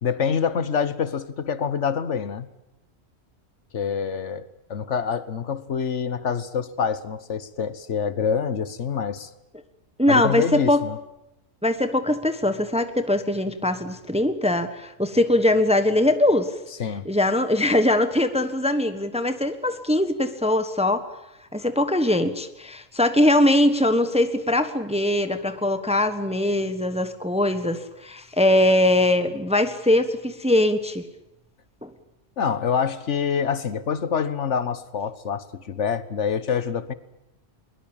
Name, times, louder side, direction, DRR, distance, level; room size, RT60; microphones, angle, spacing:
voice 1, 0.0-2.5 3.7-9.3 10.1-11.0 16.8-17.1 32.4-36.9, left 7 dB, 65° left, 14 dB, 1.5 m, -26 dB
voice 2, 10.0-10.8 11.6-16.5 17.0-21.0 21.5-31.0 31.8-31.9, left 1 dB, 5° right, 10 dB, 1.2 m, -21 dB
22.0 x 22.0 x 8.9 m, 0.86 s
omnidirectional pair, 1.3 m